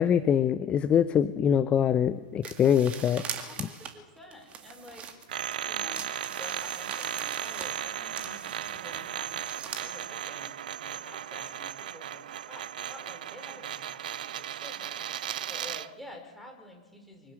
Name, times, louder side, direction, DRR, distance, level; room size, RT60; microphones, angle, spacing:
voice 1, 0.0-3.2 3.6-3.7, left 8 dB, 20° left, 14 dB, 0.7 m, -24 dB
sound 1, 2.4-5.6 5.9-9.9, right 7 dB, 25° right, 2.2 m, -42 dB
voice 2, 3.4-5.1 5.7-9.4 9.8-17.3, left 1 dB, ahead, 1 dB, 5.3 m, -49 dB
sound 2, 5.3-15.9, right 10 dB, 60° right, 0.6 m, -36 dB
24.5 x 17.5 x 7.8 m, 1.3 s
figure-of-eight pair, 100°, 5 cm